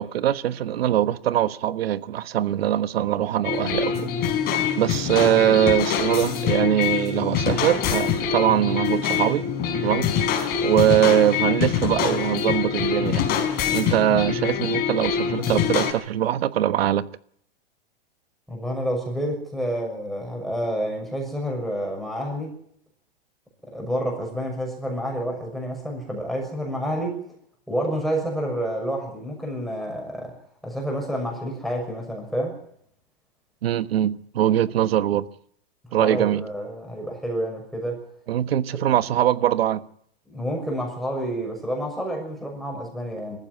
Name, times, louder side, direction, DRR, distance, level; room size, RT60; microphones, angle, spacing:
voice 1, 0.0-4.1 4.8-9.4 9.8-10.1 10.6-13.3 13.7-17.1 33.6-35.3 35.9-36.4 38.3-39.8, right 11 dB, 75° right, 1.3 m, -22 dB
sound 1, 3.4-15.9, left 7 dB, 30° left, 4.8 m, -24 dB
voice 2, 18.5-22.5 23.6-27.2 27.7-30.4 30.6-32.6 36.0-38.0 40.3-43.4, equal, ahead, 6.4 m, -29 dB
22.5 x 15.0 x 9.5 m
hypercardioid pair, 145°, 30 cm